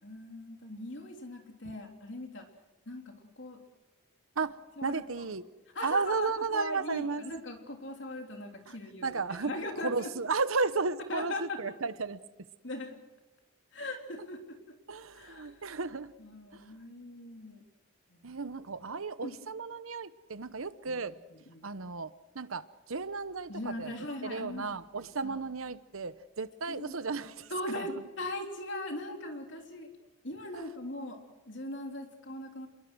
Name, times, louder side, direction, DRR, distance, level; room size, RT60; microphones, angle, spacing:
voice 1, 0.0-2.5 2.9-3.6 4.8-5.0 5.8-10.1 11.1-11.7 12.6-13.0 13.7-14.6 15.1-15.6 16.2-17.6 18.1-18.3 19.2-19.3 20.9-21.0 21.3-21.7 23.5-24.7 25.0-25.4 26.7-26.9 27.5-29.9 30.2-31.2 31.5-32.7, left 1 dB, 60° left, 3 dB, 3.5 m, -40 dB
voice 2, 4.4-5.4 5.8-7.3 8.7-8.8 9.0-9.5 9.8-12.2 14.9-16.1 16.5-16.6 18.2-21.2 21.6-23.9 24.2-28.0 30.5-30.6, right 4 dB, 80° right, 14 dB, 1.0 m, -34 dB
27.5 x 22.0 x 6.3 m, 1.1 s
head